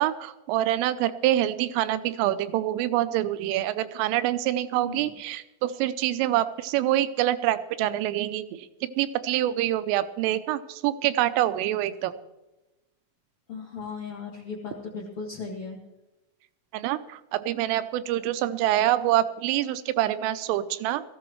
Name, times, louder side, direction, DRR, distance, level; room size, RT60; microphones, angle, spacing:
voice 1, 0.0-12.1 16.7-21.0, right 13 dB, 85° right, 12 dB, 3.2 m, -26 dB
voice 2, 13.5-15.8, left 4 dB, 60° left, -4 dB, 1.4 m, -37 dB
19.5 x 14.5 x 3.1 m, 1.0 s
omnidirectional pair, 5.7 m